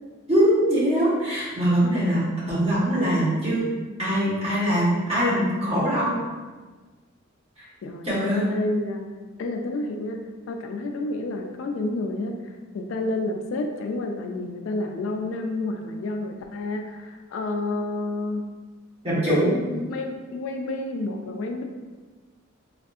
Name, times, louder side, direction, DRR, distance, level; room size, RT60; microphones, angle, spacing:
voice 1, 0.3-3.6 4.0-6.2 8.0-8.5 19.0-19.5, equal, 30° right, -10 dB, 1.1 m, -22 dB
voice 2, 7.8-9.0 9.4-10.2 10.5-12.4 12.7-18.5 19.1-21.6, left 2 dB, 70° left, 4 dB, 0.3 m, -29 dB
3.5 x 2.5 x 2.3 m, 1.3 s
head